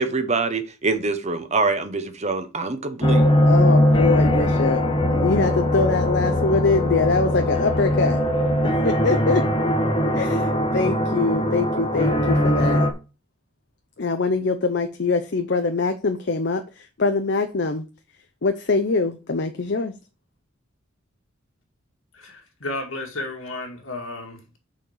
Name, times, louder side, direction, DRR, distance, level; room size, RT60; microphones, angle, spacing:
voice 1, 0.0-3.3, right 3 dB, 35° right, 0.9 m, -24 dB
sound 1, 3.0-12.9, left 1 dB, 25° left, 1.0 m, -20 dB
voice 2, 3.4-4.8 5.1-8.2 8.8-9.4 10.1-12.9 14.0-17.8 18.4-19.9, left 3 dB, 55° left, 0.7 m, -23 dB
voice 3, 22.1-24.6, left 2 dB, 85° left, 2.1 m, -33 dB
6.2 x 4.4 x 6.5 m
head